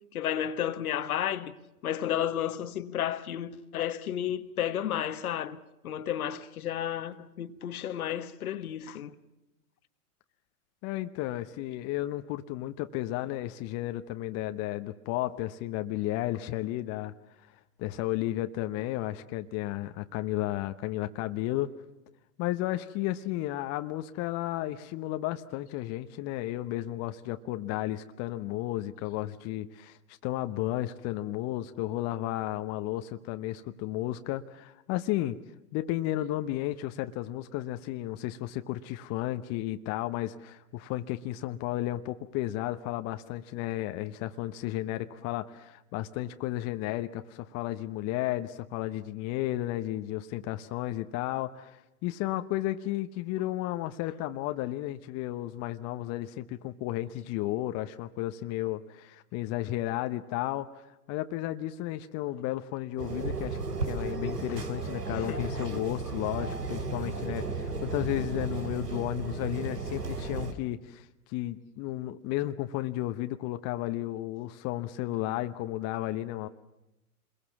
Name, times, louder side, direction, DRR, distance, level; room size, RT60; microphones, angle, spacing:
voice 1, 0.0-1.5 1.8-5.6 5.8-9.1 65.3-65.4 65.7-65.8, left 10 dB, 65° left, 1.4 m, -32 dB
voice 2, 10.8-17.1 17.8-21.7 22.4-30.0 30.2-35.4 35.7-60.7 61.1-76.5, left 15 dB, 35° left, 1.0 m, -33 dB
sound 1, 63.0-70.5, right 3 dB, 85° right, 2.4 m, -34 dB
27.0 x 22.0 x 7.3 m
hypercardioid pair, 105°, 46 cm